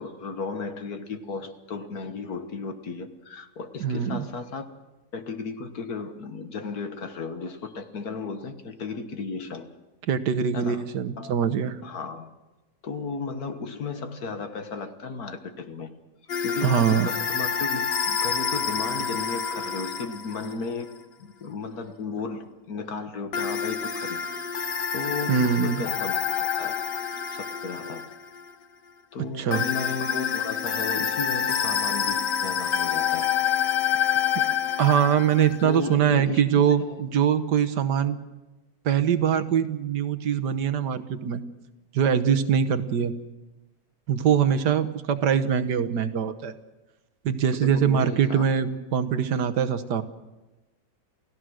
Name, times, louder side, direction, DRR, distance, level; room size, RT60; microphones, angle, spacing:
voice 1, 0.0-4.7 5.1-9.7 10.5-10.8 11.2-11.3 11.8-12.3 12.8-15.9 16.4-20.9 21.2-24.2 24.6-26.1 26.6-26.8 27.3-28.0 29.1-33.3 35.6-37.0 47.5-48.5, left 4 dB, 60° left, 8 dB, 1.8 m, -34 dB
voice 2, 3.8-4.2 10.1-11.8 16.6-17.1 25.3-25.8 29.4-29.7 34.8-38.2 38.8-41.4 41.9-43.1 44.1-46.5 47.2-50.0, right 8 dB, 70° right, 11 dB, 1.6 m, -23 dB
sound 1, 16.3-20.5 23.3-28.5 29.5-36.0, left 8 dB, 75° left, 1.9 m, -27 dB
28.5 x 16.0 x 6.3 m, 1.1 s
omnidirectional pair, 1.9 m